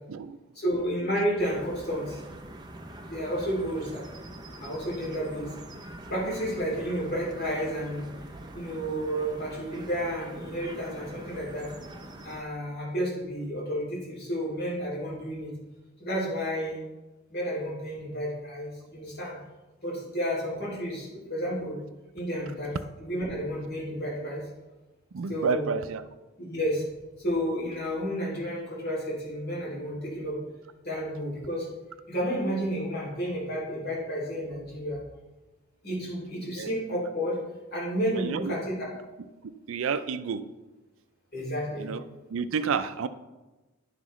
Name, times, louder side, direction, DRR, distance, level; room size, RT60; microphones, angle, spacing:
voice 1, 0.5-2.2 3.1-4.0 4.6-5.5 6.1-8.0 8.5-11.7 12.2-15.5 16.0-16.8 17.3-19.4 19.8-21.8 22.1-22.7 23.0-24.4 25.3-25.7 26.4-26.8 27.2-30.4 30.8-31.7 32.1-35.0 35.8-37.4 37.7-38.9 41.3-41.9, equal, 45° left, -6 dB, 2.7 m, -31 dB
sound 1, 1.4-12.4, right 1 dB, 20° right, 0.6 m, -44 dB
voice 2, 25.1-26.0 36.6-36.7 38.1-38.5 39.7-40.4 41.8-42.0 42.3-43.1, right 5 dB, 65° right, 12 dB, 0.4 m, -30 dB
11.0 x 5.8 x 3.1 m, 1.1 s
head